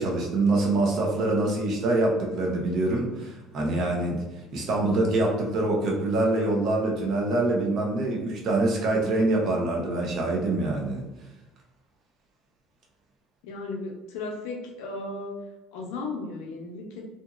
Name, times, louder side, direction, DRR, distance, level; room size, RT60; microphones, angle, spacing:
voice 1, 0.0-4.2 4.5-11.0, right 2 dB, 40° right, -1 dB, 0.6 m, -25 dB
voice 2, 13.4-15.4 15.7-17.1, left 3 dB, 85° left, 1 dB, 0.6 m, -35 dB
2.8 x 2.5 x 2.4 m, 1.0 s
cardioid pair, 170°, 0 cm